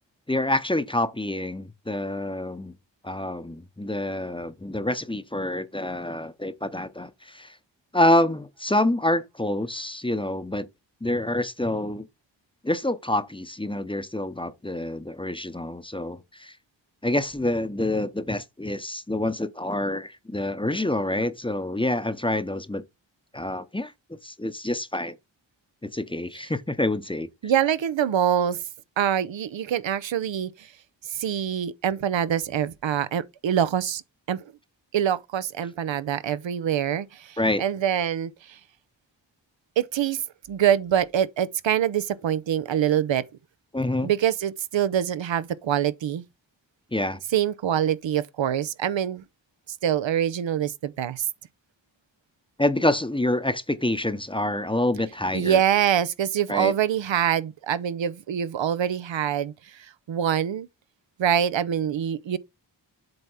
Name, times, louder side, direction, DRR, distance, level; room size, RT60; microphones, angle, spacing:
voice 1, 0.3-2.7 3.0-7.6 7.9-10.7 11.0-12.1 12.6-16.6 17.0-22.8 23.3-23.9 24.2-25.2 25.8-27.3 37.4-37.6 43.7-44.1 46.9-47.2 52.6-55.6 56.5-56.7, left 1 dB, 10° left, 0.7 m, -27 dB
voice 2, 27.4-28.6 29.0-30.5 31.1-34.0 34.3-34.4 34.9-38.3 39.8-40.2 40.5-43.2 44.0-46.2 47.3-49.2 49.8-51.3 55.3-59.5 60.1-60.7 61.2-62.4, right 9 dB, 80° right, 0.7 m, -24 dB
7.9 x 3.5 x 5.5 m
wide cardioid pair, 75°, 45 cm